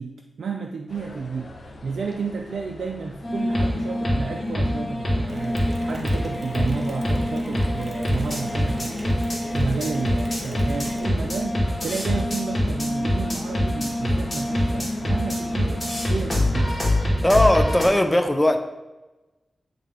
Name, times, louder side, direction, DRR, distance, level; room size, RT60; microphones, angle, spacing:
voice 1, 0.0-1.5 1.8-16.8, right 5 dB, 85° right, 2 dB, 0.4 m, -32 dB
sound 1, 0.9-16.9, left 2 dB, 65° left, 0.8 m, -42 dB
sound 2, 3.2-17.9, left 1 dB, 35° left, 2.0 m, -25 dB
Mechanisms, 5.3-11.5, right 1 dB, 20° right, 1.3 m, -40 dB
voice 2, 17.2-18.6, left 1 dB, 10° left, 6 dB, 0.5 m, -18 dB
9.5 x 3.3 x 3.7 m, 1.1 s
wide cardioid pair, 85°, 0 cm